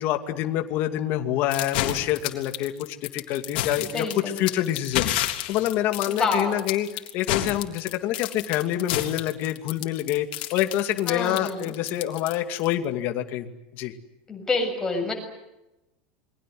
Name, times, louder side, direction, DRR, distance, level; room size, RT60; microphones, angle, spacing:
voice 1, 0.0-4.1 4.4-13.9, left 12 dB, 40° left, 7 dB, 2.5 m, -27 dB
sound 1, 1.5-12.7, left 13 dB, 70° left, 3.6 m, -30 dB
voice 2, 3.8-4.4 6.1-6.6 11.1-11.7 14.3-15.1, left 3 dB, 10° left, 2 dB, 7.2 m, -27 dB
29.0 x 23.5 x 7.9 m, 0.93 s
supercardioid pair, 170°, 6 cm